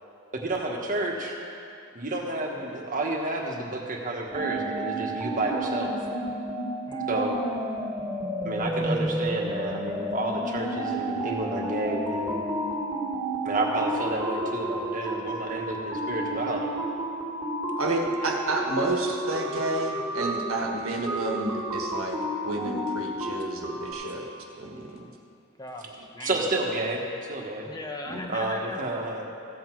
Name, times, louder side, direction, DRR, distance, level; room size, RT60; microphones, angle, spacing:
voice 1, 0.3-1.3 1.9-5.9 7.1-7.4 8.4-12.4 13.4-16.7 26.2-27.0 27.3-27.7 28.3-29.2, right 2 dB, 40° right, 0 dB, 1.4 m, -30 dB
sound 1, 4.3-23.9, right 1 dB, 10° right, 2.3 m, -31 dB
voice 2, 17.8-22.2 22.4-25.1 28.1-28.2, right 2 dB, 80° right, 1 dB, 1.4 m, -30 dB
voice 3, 25.6-26.4 27.7-28.9, left 1 dB, 20° left, 2 dB, 0.8 m, -38 dB
15.0 x 8.1 x 4.7 m, 2.5 s
head